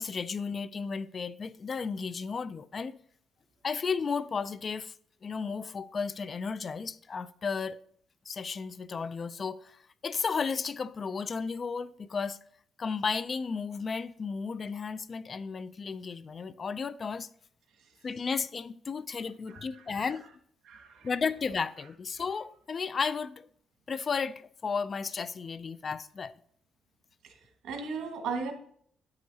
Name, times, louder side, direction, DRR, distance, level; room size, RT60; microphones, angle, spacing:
voice 1, 0.0-3.0 3.6-4.9 5.2-7.8 8.3-12.4 12.8-17.3 18.0-20.2 21.0-23.4 23.9-26.3, left 5 dB, 40° left, 0.4 m, -34 dB
voice 2, 19.5-20.1 20.6-21.1 27.2-27.4 27.6-28.5, right 5 dB, 80° right, 1.6 m, -37 dB
9.4 x 7.7 x 2.8 m
cardioid pair, 90°, 0 cm